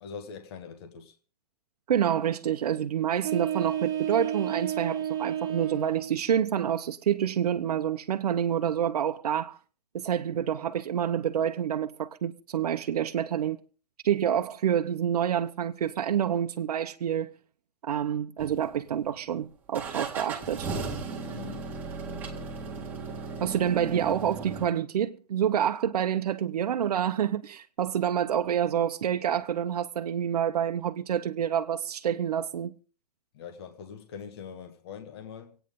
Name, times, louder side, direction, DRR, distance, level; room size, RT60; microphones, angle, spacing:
voice 1, 0.0-1.1 21.3-21.6 22.0-22.5 33.3-35.6, left 7 dB, 40° left, 1.5 m, -43 dB
voice 2, 1.9-9.6 9.9-13.6 14.0-17.3 17.8-20.7 23.4-32.7, right 9 dB, 75° right, 1.0 m, -28 dB
sound 1, 3.2-6.2, right 10 dB, 35° right, 1.8 m, -31 dB
sound 2, 18.4-19.1 19.7-24.7, right 4 dB, 10° right, 1.7 m, -36 dB
26.0 x 9.1 x 3.7 m
hypercardioid pair, 170°, 20 cm